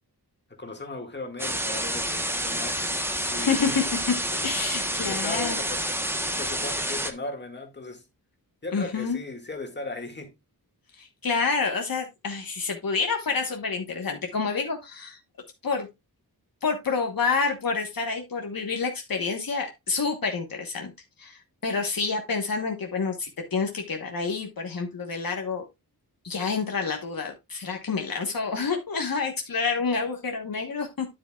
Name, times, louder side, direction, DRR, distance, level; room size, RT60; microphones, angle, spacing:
voice 1, 0.6-2.9 3.3-3.9 5.0-8.0 8.6-10.3, left 2 dB, 25° left, 2.0 m, -37 dB
sound 1, 1.4-7.1, equal, 5° right, 1.0 m, -29 dB
voice 2, 3.4-4.1 4.4-5.6 8.7-9.2 11.0-15.2 15.6-15.9 16.6-20.9 21.2-25.6 26.2-31.1, left 4 dB, 60° left, 1.3 m, -28 dB
10.0 x 7.5 x 2.3 m
wide cardioid pair, 130°, 39 cm